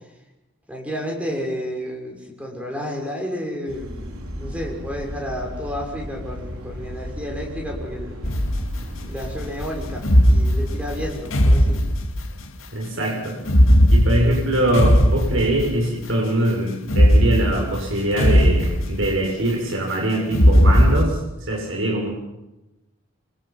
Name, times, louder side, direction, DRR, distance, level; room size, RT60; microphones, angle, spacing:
voice 1, 0.7-8.2 9.1-11.8, equal, 5° right, -1 dB, 6.4 m, -31 dB
sound 1, 3.7-11.1, equal, 85° right, 4.2 m, -34 dB
sound 2, 8.2-9.0 10.0-12.5 13.4-16.0 16.8-19.4 20.3-21.0, equal, 70° left, 2.5 m, -17 dB
voice 2, 12.7-13.4 13.9-22.1, right 1 dB, 65° right, -1 dB, 6.9 m, -22 dB
26.5 x 26.0 x 6.0 m, 0.96 s
head